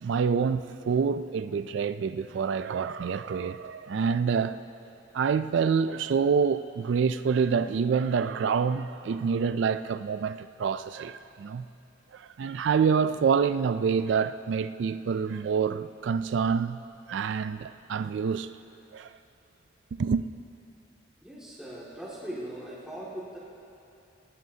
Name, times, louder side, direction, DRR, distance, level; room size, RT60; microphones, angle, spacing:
voice 1, 0.0-4.6 5.1-11.6 12.1-16.8 17.1-18.5 18.9-19.1 20.0-20.2, right 6 dB, 65° right, 0.3 m, -27 dB
voice 2, 21.2-23.4, right 1 dB, 5° right, 2.1 m, -39 dB
18.5 x 18.5 x 2.8 m
head